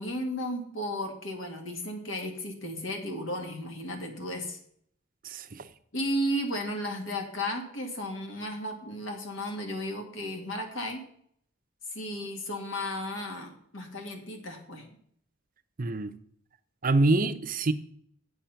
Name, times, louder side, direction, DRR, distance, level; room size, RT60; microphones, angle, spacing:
voice 1, 0.0-4.6 5.9-11.0 11.9-14.9, equal, 65° left, 4 dB, 2.0 m, -34 dB
voice 2, 5.3-5.6 15.8-16.1 16.8-17.7, right 2 dB, 45° right, 9 dB, 0.7 m, -25 dB
7.8 x 7.7 x 5.7 m, 0.65 s
head